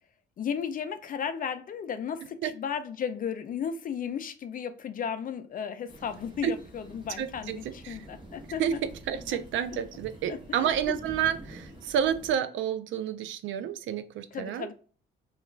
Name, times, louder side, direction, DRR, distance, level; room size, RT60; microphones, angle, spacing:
voice 1, 0.4-8.8 10.3-10.7 14.3-14.7, left 7 dB, 45° left, 0.4 m, -34 dB
sound 1, 5.9-12.3, right 1 dB, 25° right, 0.9 m, -47 dB
voice 2, 7.2-7.6 7.8-8.1 8.6-8.7 9.1-14.7, right 9 dB, 75° right, 0.4 m, -30 dB
2.3 x 2.3 x 3.0 m
cardioid pair, 90°, 20 cm